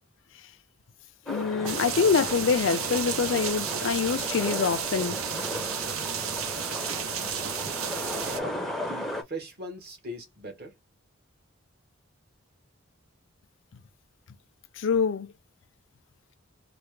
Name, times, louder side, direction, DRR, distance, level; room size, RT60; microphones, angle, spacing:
voice 1, 1.3-5.2 14.8-15.3, left 5 dB, 60° left, 0.4 m, -25 dB
sound 1, 1.3-9.2, left 1 dB, ahead, 0.5 m, -36 dB
sound 2, 1.6-8.4, right 8 dB, 80° right, 0.6 m, -32 dB
voice 2, 8.2-10.7, equal, 45° right, 1.3 m, -40 dB
3.3 x 2.2 x 3.0 m
head